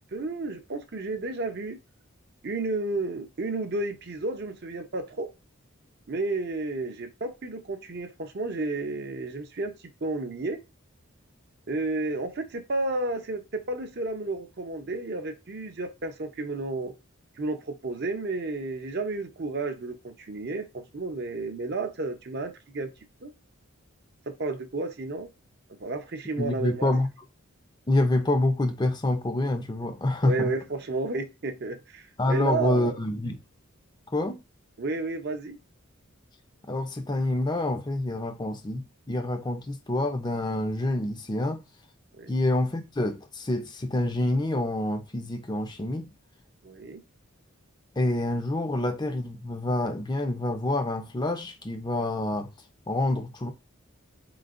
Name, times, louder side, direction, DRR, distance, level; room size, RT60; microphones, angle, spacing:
voice 1, 0.1-1.8 2.4-5.3 6.1-9.7 10.0-10.6 11.7-16.9 17.4-22.9 23.2-23.3 24.3-25.3 25.8-26.9 30.2-33.0 34.8-35.6 42.1-42.3 46.6-47.0, right 3 dB, 50° right, 0.6 m, -32 dB
voice 2, 26.4-27.1 27.9-30.5 32.2-33.4 34.1-34.4 36.7-41.6 42.3-46.1 47.9-52.5 52.9-53.5, left 1 dB, 20° left, 0.5 m, -27 dB
4.2 x 3.8 x 2.4 m
head